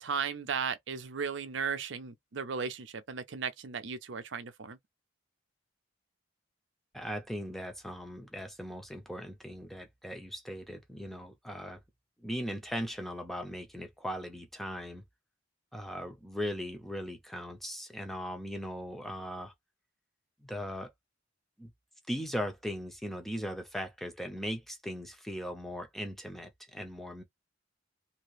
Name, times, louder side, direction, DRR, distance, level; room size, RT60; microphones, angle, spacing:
voice 1, 0.0-4.8, right 6 dB, 70° right, 0.6 m, -36 dB
voice 2, 6.9-11.8 12.2-15.0 15.7-19.5 20.4-20.9 21.6-21.7 22.1-27.2, equal, ahead, 0.7 m, -39 dB
2.8 x 2.8 x 3.1 m
head